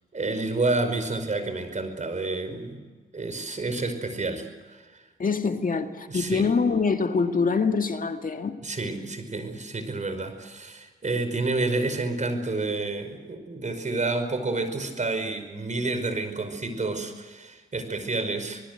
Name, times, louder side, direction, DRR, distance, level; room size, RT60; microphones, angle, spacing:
voice 1, 0.1-2.8 3.1-5.0 5.7-5.8 6.1-6.5 8.6-18.6, right 3 dB, 40° right, 9 dB, 5.1 m, -29 dB
voice 2, 5.2-8.6, left 5 dB, 45° left, 6 dB, 2.0 m, -25 dB
26.5 x 20.5 x 8.1 m, 1.4 s
supercardioid pair, 55°, 19 cm